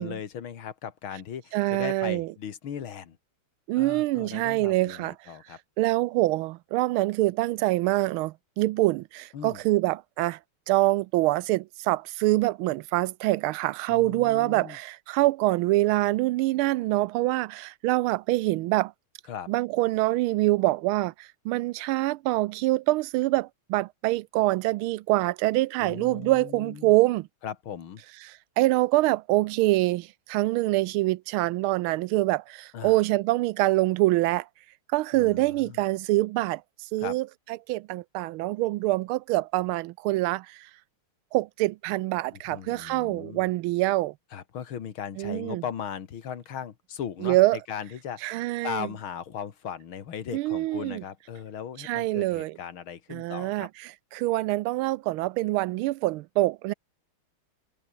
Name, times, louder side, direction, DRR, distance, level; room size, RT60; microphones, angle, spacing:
voice 1, 0.0-3.2 3.8-5.6 9.3-9.6 13.9-14.8 19.3-19.5 25.8-26.9 27.4-28.0 32.7-33.0 35.1-35.8 37.0-37.2 42.5-43.5 44.3-53.7, left 8 dB, 75° left, 2.5 m, -38 dB
voice 2, 1.5-2.3 3.7-5.1 5.8-10.4 10.7-18.9 19.5-27.3 28.2-34.5 34.9-36.6 36.9-37.3 37.7-40.7 41.3-44.1 45.2-45.6 47.2-47.6 48.2-48.9 50.3-51.0 51.8-52.6 53.1-56.7, right 18 dB, 85° right, 1.4 m, -25 dB
omnidirectional pair, 2.3 m